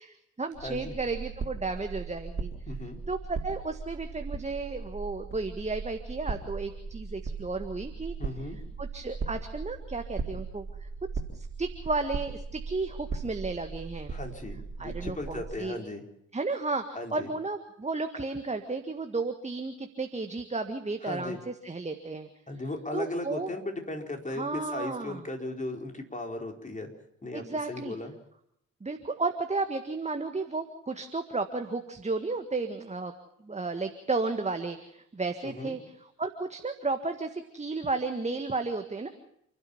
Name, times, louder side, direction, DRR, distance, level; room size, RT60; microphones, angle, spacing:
voice 1, 0.0-2.5 3.1-8.1 8.8-10.9 11.3-14.1 14.8-15.8 16.3-16.8 17.1-21.4 21.6-22.3 22.9-23.5 24.3-25.2 27.3-27.9 28.8-33.1 33.4-35.8 36.2-39.1, right 3 dB, 20° right, 6 dB, 1.8 m, -33 dB
sound 1, 0.5-15.6, right 4 dB, 35° right, 3.8 m, -38 dB
voice 2, 0.6-0.9 2.7-3.0 8.2-8.6 14.1-16.0 16.9-17.3 21.0-21.4 22.5-26.9 27.2-28.1 35.4-35.8, left 2 dB, 20° left, 2 dB, 4.6 m, -37 dB
29.5 x 12.5 x 7.2 m, 0.74 s
figure-of-eight pair, 40°, 36 cm